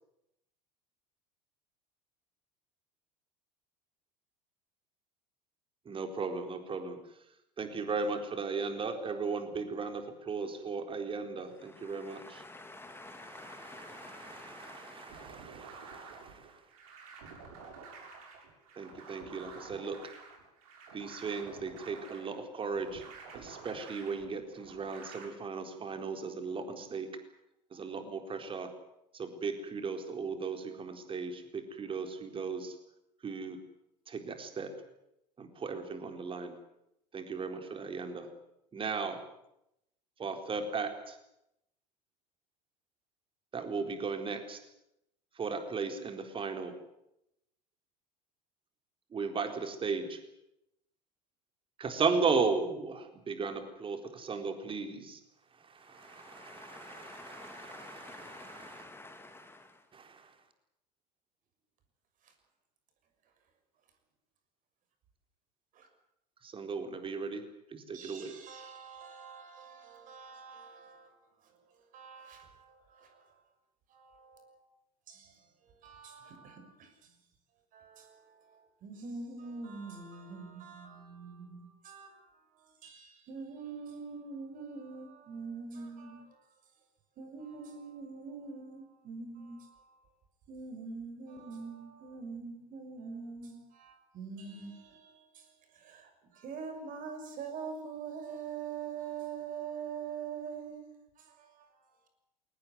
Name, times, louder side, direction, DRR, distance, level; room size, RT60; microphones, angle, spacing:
voice 1, 5.9-7.0 7.6-12.4 12.9-16.6 18.8-20.0 20.9-23.0 23.3-27.1 27.7-28.7 29.1-32.8 33.2-33.6 34.1-34.7 35.4-36.5 37.1-38.3 38.7-39.2 40.2-41.2 43.5-44.6 45.4-46.7 49.1-50.2 51.8-55.2 55.6-58.8 59.9-60.3 66.4-67.4 67.7-68.3, right 4 dB, 25° right, 4.1 m, -36 dB
voice 2, 11.7-15.5 55.9-59.8, left 2 dB, 10° left, 2.2 m, -50 dB
sound 1, 15.1-25.3, right 5 dB, 60° right, 7.2 m, -50 dB
voice 3, 67.9-71.1 71.9-73.4 73.9-74.6 75.1-75.4 75.8-77.1 77.7-82.3 82.6-86.4 87.2-90.0 90.5-100.9 101.2-101.7, right 5 dB, 40° right, 6.2 m, -44 dB
22.5 x 19.0 x 9.6 m
figure-of-eight pair, 75°, 21 cm